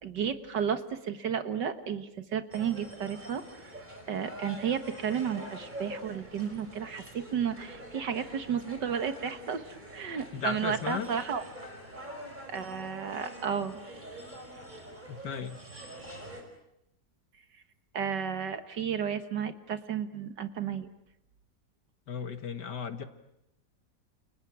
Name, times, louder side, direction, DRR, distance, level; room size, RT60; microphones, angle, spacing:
voice 1, 0.0-3.7 4.1-11.4 12.5-13.8 17.9-20.9, right 7 dB, 70° right, 9 dB, 2.1 m, -33 dB
sound 1, 2.5-16.4, right 1 dB, 25° right, 5.2 m, -45 dB
voice 2, 10.3-11.1 15.1-15.6 22.1-23.0, left 6 dB, 70° left, 8 dB, 2.3 m, -35 dB
29.5 x 29.5 x 6.3 m, 0.81 s
omnidirectional pair, 2.0 m